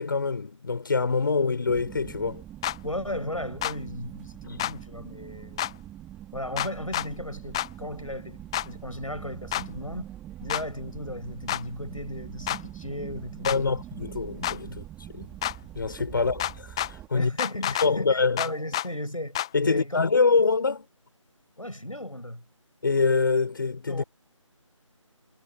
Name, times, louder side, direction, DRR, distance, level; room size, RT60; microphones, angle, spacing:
voice 1, 0.0-2.4 4.5-4.6 13.4-15.4 15.7-17.3 17.8-18.5 19.5-20.9 22.8-24.0, left 4 dB, 40° left, 6.2 m, -25 dB
sound 1, 1.7-17.1, right 12 dB, 5° right, 2.4 m, -43 dB
sound 2, 2.6-2.8 3.6-3.8 4.6-4.7 5.6-5.7 6.6-7.1 7.5-7.7 8.5-8.7 9.5-9.7 10.5-10.6 11.5-11.6 12.5-12.6 13.4-13.6 14.4-14.6 15.4-15.6 16.4-16.9 17.4-17.9 18.4-18.9 19.3-19.5, left 13 dB, 10° left, 1.0 m, -28 dB
voice 2, 2.8-5.7 6.3-10.1 10.4-13.7 14.7-14.8 17.1-20.0 21.6-22.4 23.9-24.0, left 1 dB, 85° left, 6.8 m, -36 dB
figure-of-eight pair, 160°, 17 cm